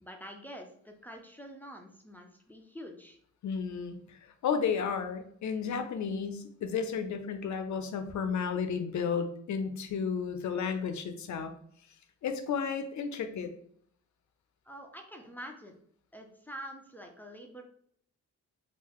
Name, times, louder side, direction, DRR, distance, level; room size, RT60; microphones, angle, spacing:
voice 1, 0.0-3.2 14.6-15.8 16.1-17.6, equal, 5° left, 2 dB, 0.4 m, -46 dB
voice 2, 3.4-4.0 4.4-11.5 12.2-13.5, left 6 dB, 70° left, 7 dB, 0.5 m, -32 dB
3.8 x 2.5 x 3.0 m, 0.64 s
wide cardioid pair, 130°, 30 cm